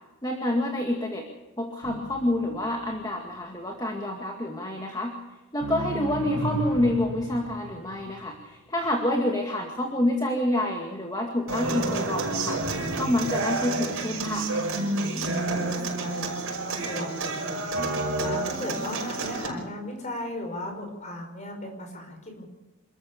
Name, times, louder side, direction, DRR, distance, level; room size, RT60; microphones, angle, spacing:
voice 1, 0.2-1.3 1.6-5.2 5.5-12.6 13.0-14.5, left 1 dB, 15° left, 1 dB, 2.1 m, -28 dB
sound 1, 1.8-3.0 5.6-8.3 11.6-14.3 17.7-18.4, equal, 90° right, 3.4 m, -34 dB
Human voice / Acoustic guitar, 11.5-19.5, right 3 dB, 60° right, 6.2 m, -30 dB
voice 2, 15.4-22.4, left 1 dB, 35° left, 3 dB, 5.7 m, -37 dB
27.5 x 14.0 x 7.0 m, 1.1 s
head